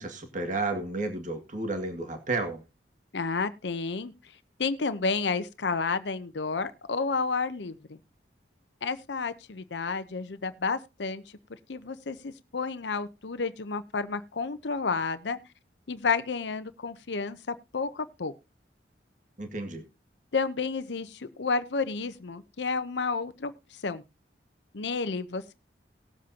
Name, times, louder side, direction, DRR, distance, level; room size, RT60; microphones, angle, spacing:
voice 1, 0.0-2.6 19.4-19.9, right 3 dB, 45° right, 2.0 m, -32 dB
voice 2, 3.1-4.1 4.6-8.0 8.8-11.2 11.7-15.4 15.9-17.4 17.7-18.3 20.3-24.0 24.7-25.5, left 4 dB, 80° left, 0.7 m, -31 dB
19.5 x 7.7 x 2.8 m
head